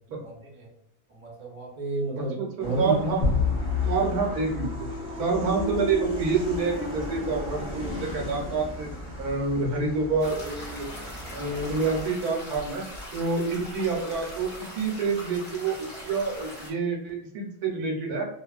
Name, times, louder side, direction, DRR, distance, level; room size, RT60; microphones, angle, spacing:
voice 1, 0.2-0.7 1.1-3.0, right 2 dB, 35° right, -4 dB, 0.7 m, -32 dB
voice 2, 2.4-3.2 3.8-4.7 5.2-8.9 9.2-10.9 11.3-12.8 13.1-15.7 16.0-18.3, right 4 dB, 80° right, 0 dB, 1.1 m, -27 dB
sound 1, 2.6-12.0, equal, 10° right, 0.3 m, -36 dB
sound 2, 3.2-6.0, left 5 dB, 45° left, 0.9 m, -29 dB
sound 3, 10.2-16.7, left 1 dB, 20° left, 0.9 m, -41 dB
2.8 x 2.3 x 2.3 m, 0.80 s
omnidirectional pair, 1.7 m